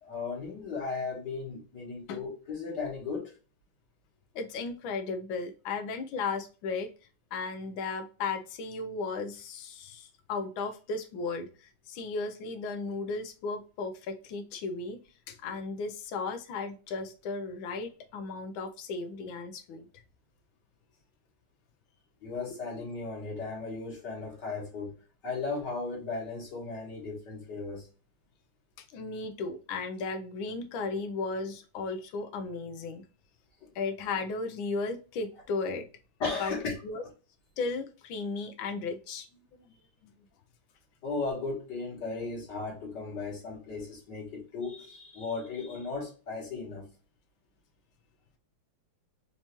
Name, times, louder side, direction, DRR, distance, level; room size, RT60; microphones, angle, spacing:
voice 1, 0.0-3.3 22.2-24.9 25.2-27.9 32.3-32.4 33.6-33.7 36.2-36.7 41.0-46.9, left 4 dB, 60° left, 2.2 m, -36 dB
voice 2, 4.3-6.9 7.3-15.0 15.3-19.9 28.9-33.0 33.7-35.8 36.4-36.5 36.8-37.0 37.6-39.3 40.0-40.1, left 4 dB, 85° left, 1.5 m, -35 dB
4.7 x 2.8 x 3.0 m
omnidirectional pair, 2.1 m